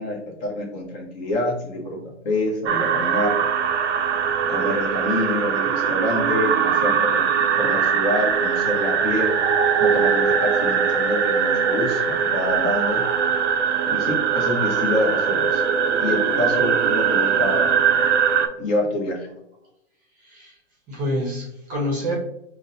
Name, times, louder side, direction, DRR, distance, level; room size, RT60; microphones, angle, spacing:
voice 1, 0.0-2.0 2.2-3.4 4.5-7.2 7.6-9.3 9.8-13.0 13.9-15.6 16.0-17.8 18.6-19.3, left 1 dB, 35° left, 0 dB, 0.9 m, -26 dB
sound 1, 2.7-18.5, right 7 dB, 65° right, 0.5 m, -21 dB
voice 2, 20.2-20.5 20.9-22.1, equal, 20° right, -1 dB, 0.7 m, -27 dB
5.0 x 2.1 x 2.6 m, 0.81 s
hypercardioid pair, 135°, 38 cm